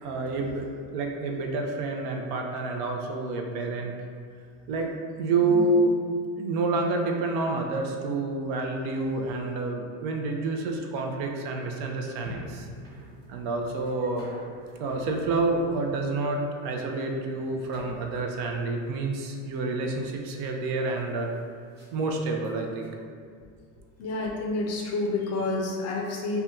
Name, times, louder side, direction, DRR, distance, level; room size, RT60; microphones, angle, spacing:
voice 1, 0.0-3.9 4.7-4.9 5.2-6.0 6.4-12.7 13.3-14.3 14.8-21.3 21.9-22.9, right 3 dB, 70° right, 2 dB, 0.6 m, -28 dB
voice 2, 5.4-5.8 24.0-26.4, left 2 dB, 35° left, 0 dB, 0.4 m, -29 dB
sound 1, 12.0-22.9, right 1 dB, 20° right, 1.1 m, -47 dB
2.7 x 2.2 x 3.6 m, 2.1 s
supercardioid pair, 115°, 45 cm